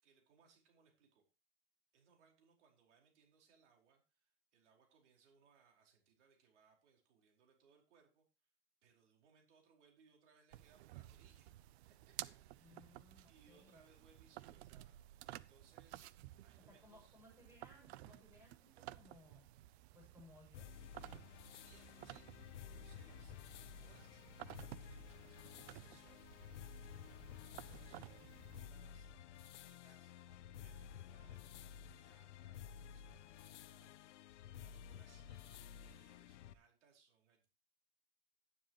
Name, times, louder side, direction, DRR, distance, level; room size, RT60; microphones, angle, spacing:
voice 1, 0.0-1.2 1.9-8.5 8.8-11.5 12.0-13.0 13.2-14.9 15.2-16.2 16.4-17.2 21.5-22.3 22.6-37.5, right 6 dB, 90° right, 1 dB, 4.9 m, -71 dB
sound 1, 10.5-28.6, right 15 dB, 65° right, 0.7 m, -55 dB
voice 2, 12.6-13.8 16.6-19.5 19.9-20.8 21.0-21.3 27.5-28.2, left 2 dB, 5° right, -1 dB, 6.7 m, -64 dB
sound 2, 20.5-36.5, left 8 dB, 85° left, 1.0 m, -54 dB
12.5 x 11.0 x 3.1 m, 0.30 s
supercardioid pair, 150°, 34 cm